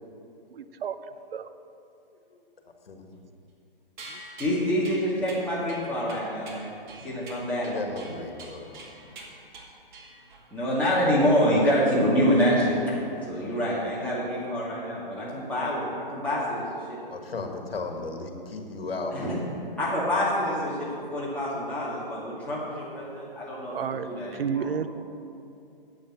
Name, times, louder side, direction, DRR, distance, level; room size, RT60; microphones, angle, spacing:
voice 1, 0.5-1.0 1.3-1.5 4.1-4.2 23.7-24.9, right 7 dB, 75° right, 11 dB, 0.7 m, -31 dB
sound 1, 4.0-10.5, right 2 dB, 55° right, 2.4 m, -46 dB
voice 2, 4.4-6.7 7.0-7.8 10.5-12.8 13.3-17.0 19.1-19.3 19.8-23.7 24.0-24.7, equal, 5° left, -9 dB, 2.3 m, -26 dB
voice 3, 7.6-8.7 17.1-19.1, left 3 dB, 85° left, 4 dB, 1.6 m, -35 dB
8.5 x 7.3 x 7.4 m, 2.6 s
hypercardioid pair, 145°, 29 cm